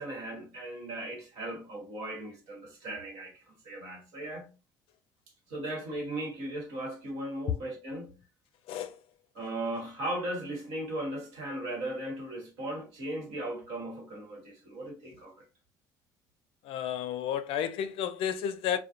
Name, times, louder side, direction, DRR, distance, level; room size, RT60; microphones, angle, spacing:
voice 1, 0.0-4.5 5.5-8.2 9.3-15.4, right 1 dB, 75° right, 1.1 m, -37 dB
voice 2, 16.6-18.8, left 9 dB, 65° left, 0.4 m, -32 dB
2.4 x 2.1 x 2.7 m
hypercardioid pair, 70°, 10 cm